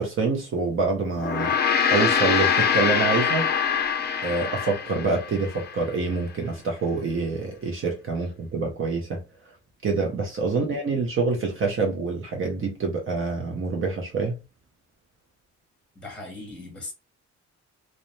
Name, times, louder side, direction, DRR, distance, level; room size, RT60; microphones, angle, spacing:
voice 1, 0.0-1.6 1.9-3.5 4.2-9.2 9.8-14.4, right 4 dB, 45° right, 0.7 m, -26 dB
Gong, 1.1-5.8, left 7 dB, 35° left, 0.5 m, -24 dB
voice 2, 15.9-16.9, left 2 dB, 5° left, 1.1 m, -39 dB
2.4 x 2.1 x 2.9 m
cardioid pair, 90°, 30 cm